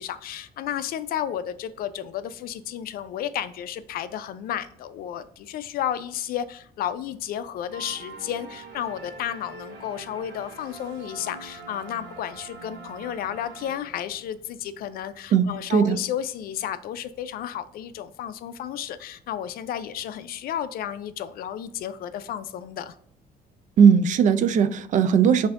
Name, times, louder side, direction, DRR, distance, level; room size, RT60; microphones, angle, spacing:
voice 1, 0.0-22.9, left 10 dB, 60° left, 12 dB, 0.4 m, -32 dB
sound 1, 7.7-14.3, right 3 dB, 80° right, 0.9 m, -43 dB
voice 2, 15.3-16.0 23.8-25.5, right 7 dB, 50° right, 13 dB, 0.4 m, -18 dB
5.5 x 2.6 x 2.4 m, 0.65 s
cardioid pair, 110°, 17 cm